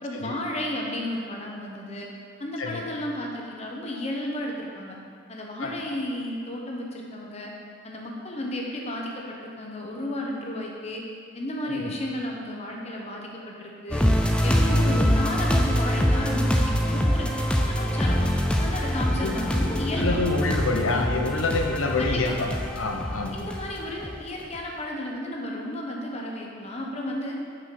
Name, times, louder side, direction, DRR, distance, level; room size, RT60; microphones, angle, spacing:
voice 1, 0.0-2.1 2.4-5.0 5.3-7.5 7.8-11.0 11.3-14.1 14.4-17.3 17.7-18.3 18.6-20.2 22.0-22.3 23.3-27.4, left 1 dB, 35° left, -1 dB, 1.0 m, -33 dB
voice 2, 2.6-2.9 5.6-5.7 11.7-12.0 14.8-15.0 19.2-19.3 19.9-22.5 22.7-23.4, left 3 dB, 90° left, 2 dB, 0.8 m, -27 dB
sound 1, 13.9-24.2 24.6-24.7, equal, 5° left, 0.4 m, -24 dB
6.1 x 5.0 x 6.0 m, 2.2 s
head